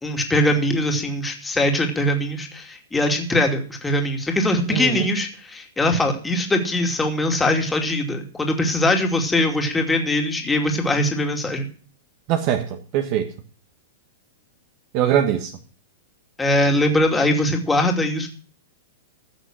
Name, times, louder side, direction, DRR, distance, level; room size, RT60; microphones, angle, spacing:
voice 1, 0.0-11.7 16.4-18.3, left 1 dB, 10° left, 2.6 m, -21 dB
voice 2, 4.7-5.1 12.3-13.3 14.9-15.5, right 10 dB, 45° right, 1.3 m, -22 dB
15.0 x 6.3 x 6.2 m
hypercardioid pair, 120°, 0 cm